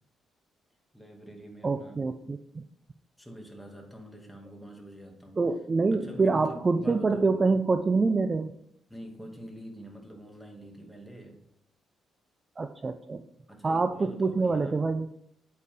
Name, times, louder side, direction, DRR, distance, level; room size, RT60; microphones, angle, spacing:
voice 1, 0.9-2.0 3.2-5.4 5.9-7.4 8.9-11.4 13.5-14.9, equal, ahead, 1 dB, 2.3 m, -45 dB
voice 2, 1.6-2.6 5.4-8.5 12.6-13.2 13.6-15.0, right 3 dB, 30° right, 9 dB, 0.5 m, -26 dB
8.5 x 8.5 x 3.7 m, 0.73 s
cardioid pair, 90°, 0 cm